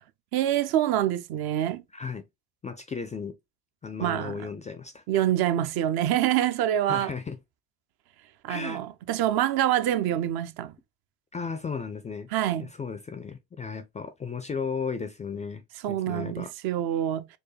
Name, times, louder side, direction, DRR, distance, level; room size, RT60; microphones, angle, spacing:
voice 1, 0.3-1.8 4.0-4.4 5.1-7.1 8.4-10.7 12.3-12.7 15.8-17.3, right 12 dB, 50° right, 0.6 m, -26 dB
voice 2, 1.9-2.2 2.6-3.3 3.8-5.2 6.9-7.4 8.5-8.8 11.3-12.3 12.6-16.5, left 5 dB, 15° left, 0.4 m, -35 dB
4.6 x 2.2 x 3.1 m
hypercardioid pair, 70°, 48 cm